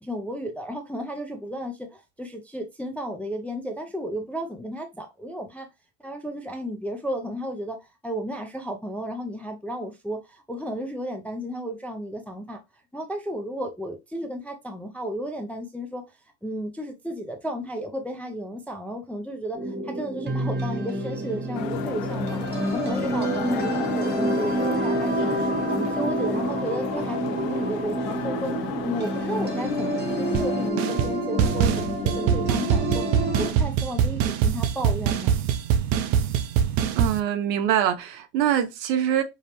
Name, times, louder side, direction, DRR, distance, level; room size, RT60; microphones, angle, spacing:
voice 1, 0.0-5.7 6.0-7.8 8.0-12.6 12.9-16.0 16.4-22.4 22.7-25.3 25.7-28.6 28.8-33.1 33.4-35.3, equal, 5° left, 0.3 m, -33 dB
sound 1, 19.5-33.5, right 1 dB, 20° right, 0.9 m, -28 dB
sound 2, 21.5-30.7, left 8 dB, 80° left, 0.7 m, -33 dB
sound 3, 30.3-30.5 30.8-31.1 31.4-37.2, right 8 dB, 60° right, 0.6 m, -23 dB
voice 2, 36.8-39.2, right 10 dB, 85° right, 0.9 m, -24 dB
5.0 x 2.1 x 2.8 m
supercardioid pair, 105°, 49 cm